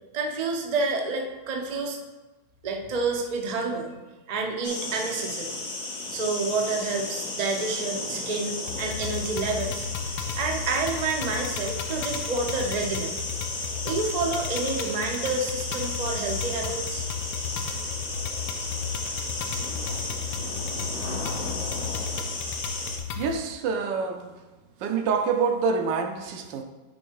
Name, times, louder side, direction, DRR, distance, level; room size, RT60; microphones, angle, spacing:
voice 1, 0.1-2.0 2.6-3.9 4.3-5.6 6.1-9.9 10.4-13.2 13.8-17.0, right 3 dB, 55° right, 0.4 m, -29 dB
sound 1, 4.6-23.0, left 2 dB, 45° left, 0.5 m, -34 dB
sound 2, 8.7-23.3, left 6 dB, 75° left, 1.1 m, -34 dB
voice 2, 23.1-24.4 24.8-26.6, right 5 dB, 75° right, 1.3 m, -27 dB
9.9 x 3.3 x 4.6 m
omnidirectional pair, 2.0 m